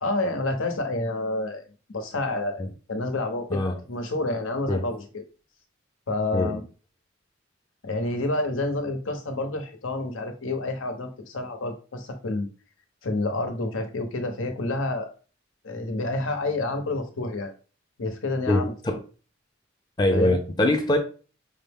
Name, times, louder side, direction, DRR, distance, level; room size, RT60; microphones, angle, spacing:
voice 1, 0.0-1.6 1.9-5.0 6.1-6.6 7.8-12.5 13.0-15.1 15.6-17.5 18.0-19.0 20.1-20.4, left 2 dB, 90° left, 0.9 m, -29 dB
voice 2, 18.5-19.0 20.0-21.0, left 1 dB, 20° left, 0.5 m, -23 dB
5.3 x 2.0 x 3.5 m
head